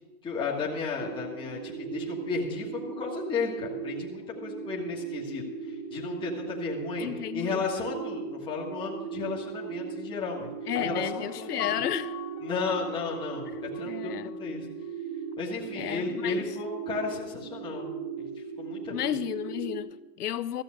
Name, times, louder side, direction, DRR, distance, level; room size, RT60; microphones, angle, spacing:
voice 1, 0.2-5.4 5.9-7.1 7.3-10.5 10.8-11.8 12.4-13.5 13.7-14.6 15.4-17.9 18.2-18.3 18.6-19.1, left 4 dB, 10° left, 1.6 m, -34 dB
sound 1, 1.0-19.8, right 6 dB, 20° right, 1.1 m, -38 dB
voice 2, 7.0-7.6 10.7-12.2 13.5-14.3 15.7-16.4 18.9-20.6, left 11 dB, 75° left, 0.8 m, -33 dB
Piano, 10.7-13.8 14.3-14.4, left 12 dB, 40° left, 1.5 m, -40 dB
14.0 x 7.8 x 6.3 m
hypercardioid pair, 145°, 47 cm